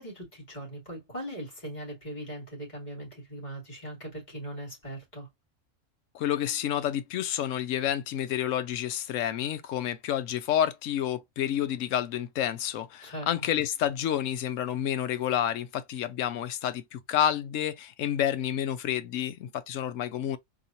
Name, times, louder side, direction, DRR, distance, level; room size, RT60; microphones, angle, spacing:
voice 1, 0.0-5.3 13.0-13.3, right 1 dB, 35° left, 2.6 m, -40 dB
voice 2, 6.1-20.4, left 10 dB, 80° left, 1.0 m, -29 dB
4.1 x 2.8 x 2.8 m
omnidirectional pair, 1.3 m